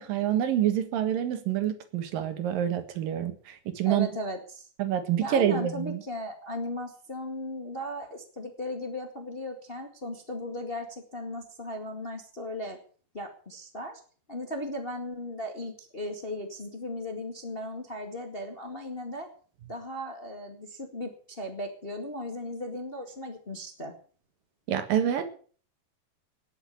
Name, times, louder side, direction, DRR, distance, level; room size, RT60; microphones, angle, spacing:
voice 1, 0.0-4.1 4.8-6.0 24.7-25.3, right 10 dB, 75° right, 9 dB, 3.3 m, -27 dB
voice 2, 3.8-4.7 5.2-12.8 13.1-14.0 14.3-19.3 19.7-23.9, left 1 dB, 25° left, 4 dB, 1.5 m, -36 dB
19.0 x 8.2 x 7.1 m, 0.43 s
omnidirectional pair, 4.1 m